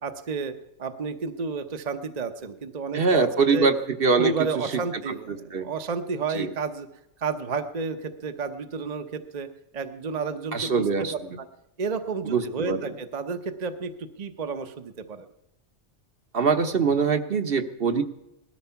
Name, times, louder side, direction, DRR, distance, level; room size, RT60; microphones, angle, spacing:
voice 1, 0.0-3.7 4.2-6.9 7.2-9.5 9.7-11.2 11.8-15.3, right 4 dB, 40° right, 7 dB, 0.8 m, -31 dB
voice 2, 2.9-3.7 4.0-4.3 4.7-4.8 5.3-5.7 6.3-6.5 10.5-11.1 12.2-12.8 16.3-18.0, right 5 dB, 55° right, 7 dB, 1.2 m, -23 dB
18.5 x 12.5 x 5.8 m, 0.87 s
omnidirectional pair, 1.2 m